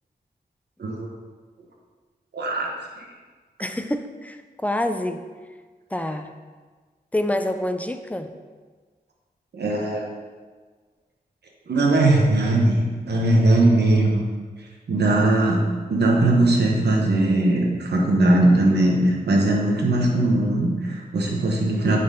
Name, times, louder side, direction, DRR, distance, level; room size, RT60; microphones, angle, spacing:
voice 1, 2.3-2.7 9.5-10.1 11.7-14.2 14.9-22.0, right 2 dB, 80° right, -1 dB, 1.1 m, -20 dB
voice 2, 3.6-5.2 5.9-6.3 7.1-8.3 21.8-22.0, left 1 dB, 10° left, 8 dB, 0.5 m, -27 dB
9.5 x 4.0 x 3.8 m, 1.4 s
cardioid pair, 70°, 17 cm